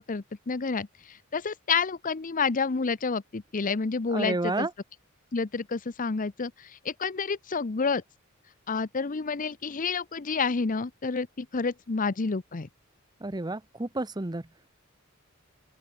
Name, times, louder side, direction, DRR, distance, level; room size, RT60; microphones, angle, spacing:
voice 1, 0.0-4.7 5.3-8.0 8.7-12.7, left 4 dB, 40° left, 0.7 m, -29 dB
voice 2, 4.1-4.7 13.2-14.4, right 2 dB, 20° right, 0.9 m, -30 dB
open air
head